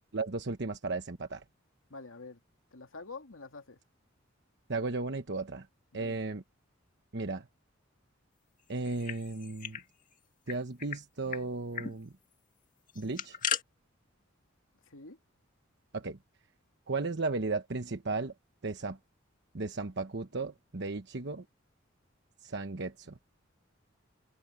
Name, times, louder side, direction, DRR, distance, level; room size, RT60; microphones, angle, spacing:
voice 1, 0.1-1.4 4.7-5.7 5.9-6.4 7.1-7.5 8.7-9.8 10.5-12.1 12.9-13.4 15.9-16.2 16.9-18.3 18.6-19.0 19.5-21.4 22.4-23.2, right 3 dB, 60° right, 1.1 m, -35 dB
voice 2, 1.9-2.4 2.7-3.8 5.9-6.2 14.9-15.2, left 3 dB, 85° left, 2.4 m, -47 dB
sound 1, 8.8-9.8 10.1-10.2 10.5-11.0 11.3-11.4 11.7-11.9 12.9-13.6, left 7 dB, 40° left, 2.0 m, -36 dB
head